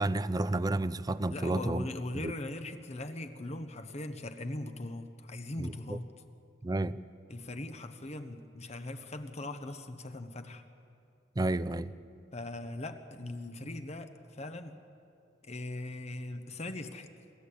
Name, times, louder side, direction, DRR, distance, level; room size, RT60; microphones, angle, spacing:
voice 1, 0.0-1.9 2.1-2.3 5.6-6.0 6.6-7.0 11.4-11.9, right 2 dB, 20° right, 0.5 m, -31 dB
voice 2, 1.3-6.1 7.3-10.6 12.3-14.8 15.4-17.1, left 2 dB, 40° left, 1.2 m, -40 dB
27.5 x 13.5 x 8.5 m
head